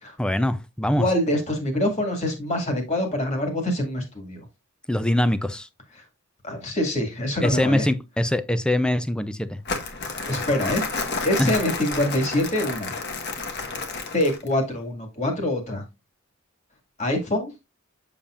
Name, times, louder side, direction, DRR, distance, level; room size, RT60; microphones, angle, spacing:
voice 1, 0.2-1.1 4.9-5.7 7.4-9.6 11.4-11.5, left 1 dB, 5° left, 0.4 m, -23 dB
voice 2, 1.0-4.4 6.4-7.9 10.3-10.9 11.2-12.9 14.1-15.8 17.0-17.5, left 1 dB, 30° left, 2.0 m, -25 dB
Crumpling crinkling, 9.7-14.5, left 4 dB, 50° left, 1.3 m, -31 dB
7.2 x 7.0 x 2.4 m
head